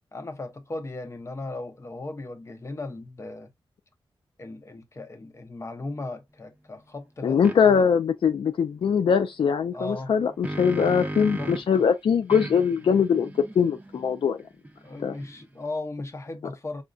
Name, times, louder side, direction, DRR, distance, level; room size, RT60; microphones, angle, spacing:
voice 1, 0.1-3.5 4.4-7.9 9.7-10.1 11.3-11.8 14.8-16.8, left 2 dB, 35° left, 0.8 m, -37 dB
voice 2, 7.2-14.4 15.0-15.1, left 6 dB, 75° left, 0.4 m, -22 dB
sound 1, 7.4-7.6 10.0-11.8 12.3-15.6, right 1 dB, 15° right, 0.6 m, -36 dB
5.1 x 2.2 x 2.4 m
wide cardioid pair, 85°, 9 cm